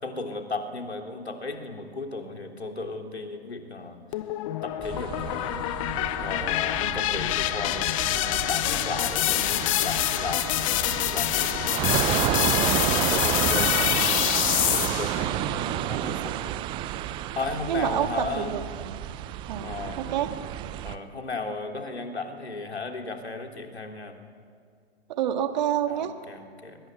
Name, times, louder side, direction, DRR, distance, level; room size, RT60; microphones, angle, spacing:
voice 1, 0.0-4.0 4.6-5.6 6.2-14.4 14.7-16.6 17.1-18.5 19.6-20.0 20.8-24.2 25.9-26.8, left 3 dB, 80° left, 3 dB, 3.7 m, -35 dB
sound 1, 4.1-15.2, left 15 dB, 30° left, 1.0 m, -26 dB
sound 2, 4.8-21.0, right 12 dB, 15° right, 0.6 m, -31 dB
voice 2, 17.7-19.0 19.5-20.3 25.1-26.1, right 10 dB, 45° right, 7 dB, 2.1 m, -28 dB
23.0 x 21.0 x 9.2 m, 2.2 s
figure-of-eight pair, 120°, 32 cm